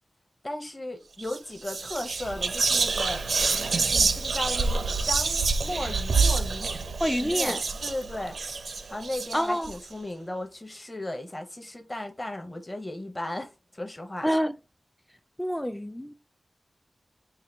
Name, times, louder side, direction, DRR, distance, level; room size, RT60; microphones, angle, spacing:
voice 1, 0.4-3.3 3.7-6.7 7.1-8.4 8.9-14.3, left 1 dB, 20° left, 0.8 m, -36 dB
Whispering, 1.2-1.4 1.7-9.7, right 4 dB, 80° right, 0.5 m, -27 dB
voice 2, 7.0-7.6 9.3-9.7 14.2-14.5 15.4-16.1, equal, 5° left, 0.3 m, -27 dB
4.5 x 2.2 x 3.3 m
wide cardioid pair, 105°, 0 cm